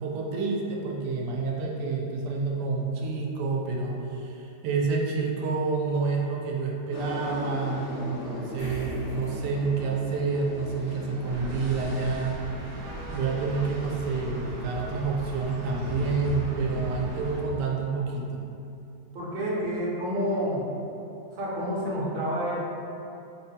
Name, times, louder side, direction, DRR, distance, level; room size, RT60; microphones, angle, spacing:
voice 1, 0.0-12.4 13.1-18.4, right 4 dB, 90° right, -1 dB, 1.2 m, -28 dB
sound 1, 6.9-17.9, left 1 dB, 70° left, 0.6 m, -39 dB
sound 2, 8.6-15.4, equal, 90° left, 1.8 m, -48 dB
sound 3, 11.3-17.4, right 1 dB, 70° right, 1.0 m, -39 dB
voice 2, 19.1-20.7 21.3-22.6, equal, 55° right, -6 dB, 0.5 m, -29 dB
4.8 x 2.2 x 2.7 m, 2.7 s
omnidirectional pair, 1.8 m